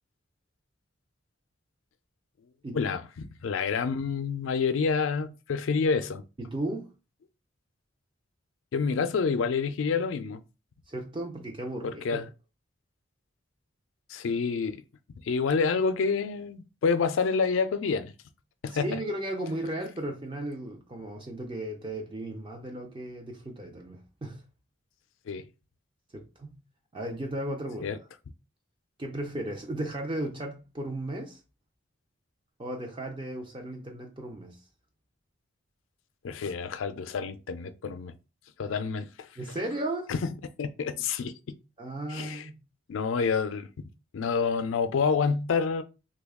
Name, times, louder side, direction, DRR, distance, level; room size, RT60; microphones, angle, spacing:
voice 1, 2.7-6.2 8.7-10.4 11.8-12.3 14.1-14.8 15.2-18.1 18.6-19.0 25.3-25.5 27.8-28.0 36.2-38.1 38.6-39.3 40.1-40.3 40.6-41.3 42.1-42.5 42.9-43.7 44.1-45.8, left 5 dB, 80° left, 0.4 m, -28 dB
voice 2, 6.4-6.9 10.9-12.2 18.7-24.4 26.1-26.6 26.9-27.9 29.0-31.4 32.6-34.6 39.4-40.1 41.8-42.6, right 1 dB, 25° right, 0.5 m, -35 dB
3.1 x 2.3 x 3.5 m
head